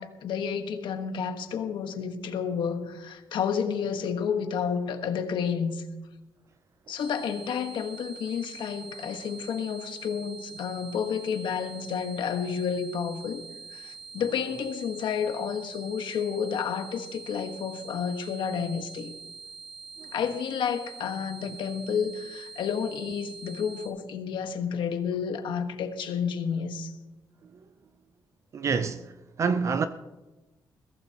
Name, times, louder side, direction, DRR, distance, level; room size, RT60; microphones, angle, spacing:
voice 1, 0.0-5.8 6.9-13.4 13.7-19.1 20.1-27.0, left 7 dB, 70° left, 1.3 m, -30 dB
sound 1, 7.0-23.9, right 4 dB, 10° right, 5.6 m, -45 dB
voice 2, 28.5-29.1 29.4-29.9, right 5 dB, 35° right, 0.5 m, -26 dB
21.5 x 15.5 x 2.9 m
wide cardioid pair, 175°, 8 cm